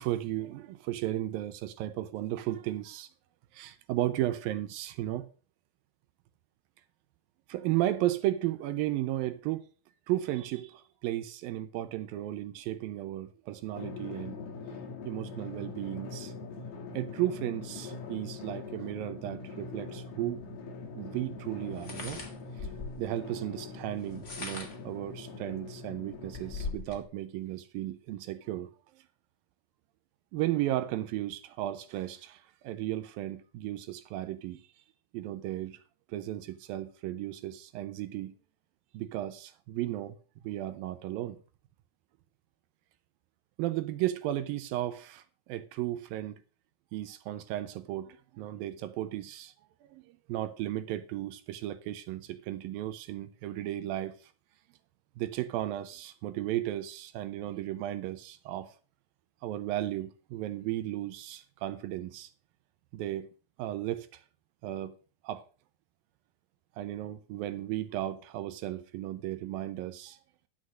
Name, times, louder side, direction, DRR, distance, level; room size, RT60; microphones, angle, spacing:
voice 1, 0.0-3.1 3.5-5.3 7.5-9.7 10.1-14.4 15.1-16.3 16.9-20.4 21.0-22.2 22.6-22.7 23.0-28.7 30.3-34.6 35.1-35.8 36.1-38.3 38.9-40.2 40.4-41.4 43.6-46.4 46.9-49.5 49.9-54.1 55.2-58.7 59.4-62.3 62.9-63.3 63.6-64.2 64.6-65.0 65.2-65.4 66.8-70.2, right 14 dB, 80° right, 2.3 m, -34 dB
Drum, 13.7-26.7, left 4 dB, 75° left, 3.9 m, -43 dB
sound 1, 20.4-20.5 21.7-23.1 24.0-24.9 25.5-25.6 25.9-27.0, left 4 dB, 45° left, 0.9 m, -40 dB
11.5 x 6.3 x 6.2 m
omnidirectional pair, 4.6 m